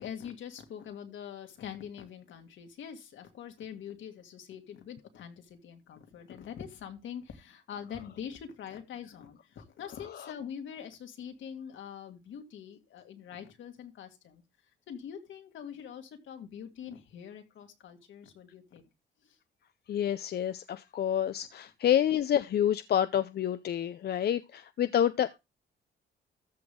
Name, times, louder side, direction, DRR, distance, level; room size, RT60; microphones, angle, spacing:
voice 1, 0.0-14.4 14.9-18.9 19.2-19.4 24.8-24.9, left 8 dB, 75° left, 2.3 m, -44 dB
voice 2, 19.9-25.4, left 10 dB, 55° left, 0.6 m, -28 dB
14.0 x 5.9 x 3.7 m
cardioid pair, 90°, 20 cm